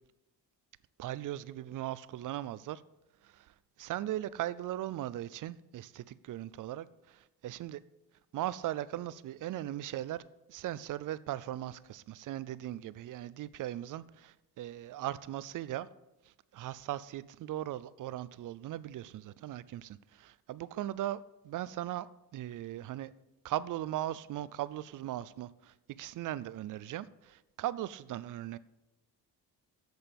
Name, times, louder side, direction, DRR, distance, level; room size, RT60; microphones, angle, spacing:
voice 1, 1.0-2.8 3.2-7.8 8.3-10.2 10.5-15.9 16.5-21.2 21.4-22.1 22.3-23.1 23.4-28.6, right 13 dB, 55° right, 17 dB, 0.5 m, -38 dB
11.0 x 8.0 x 5.2 m, 0.96 s
cardioid pair, 175°, 38 cm